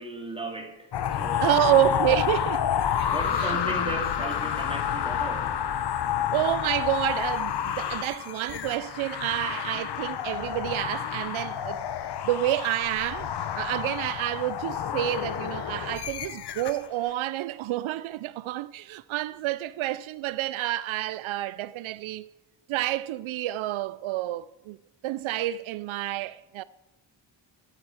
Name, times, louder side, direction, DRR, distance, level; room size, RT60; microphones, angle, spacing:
voice 1, 0.0-1.8 2.9-5.6, right 2 dB, 10° right, 2.6 m, -36 dB
sound 1, 0.9-16.9, left 9 dB, 55° left, 1.0 m, -29 dB
voice 2, 1.4-2.7 3.0-3.1 3.4-3.6 6.3-11.8 12.2-22.3 22.7-24.8 25.0-26.6, right 14 dB, 80° right, 0.5 m, -29 dB
13.5 x 9.0 x 8.0 m
cardioid pair, 130°, 48 cm